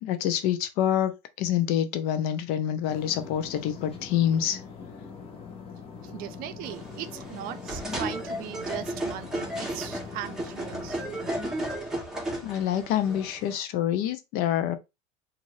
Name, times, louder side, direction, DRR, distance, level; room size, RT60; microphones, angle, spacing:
voice 1, 0.0-1.1 1.4-4.6 12.4-14.8, left 10 dB, 65° left, 0.6 m, -26 dB
sound 1, 2.9-11.3, left 5 dB, 35° left, 0.9 m, -43 dB
voice 2, 6.0-11.0, right 12 dB, 55° right, 0.5 m, -39 dB
sound 2, 6.6-13.5, right 1 dB, 5° right, 1.1 m, -34 dB
2.6 x 2.6 x 3.1 m
supercardioid pair, 120°, 17 cm